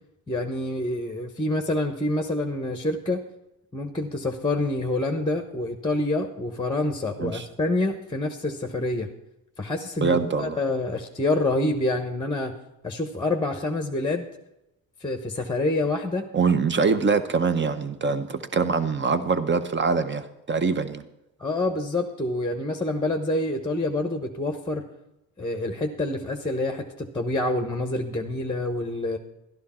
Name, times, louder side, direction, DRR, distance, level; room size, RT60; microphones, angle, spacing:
voice 1, 0.3-3.2 3.7-9.1 9.6-12.5 12.8-14.3 15.0-16.3 21.4-24.9 25.4-29.2, left 2 dB, 10° left, 5 dB, 1.0 m, -27 dB
voice 2, 10.0-10.6 16.3-21.0, right 5 dB, 25° right, 11 dB, 1.0 m, -24 dB
12.0 x 11.0 x 4.3 m, 0.90 s
cardioid pair, 90°, 42 cm